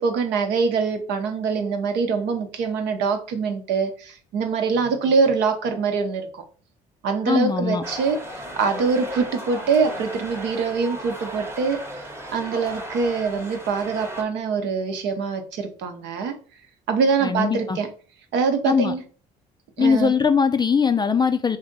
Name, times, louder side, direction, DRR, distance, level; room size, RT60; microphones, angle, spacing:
voice 1, 0.0-6.4 7.0-8.2 8.6-11.8 12.3-16.4 16.9-17.9 18.3-19.0 19.8-20.1, right 5 dB, 60° right, 0.8 m, -24 dB
voice 2, 7.3-7.8 17.2-17.8 18.7-18.9 19.8-21.6, left 6 dB, 20° left, 0.4 m, -20 dB
sound 1, 7.8-14.2, right 1 dB, 10° right, 1.0 m, -36 dB
3.3 x 2.6 x 3.9 m
hypercardioid pair, 55°, 20 cm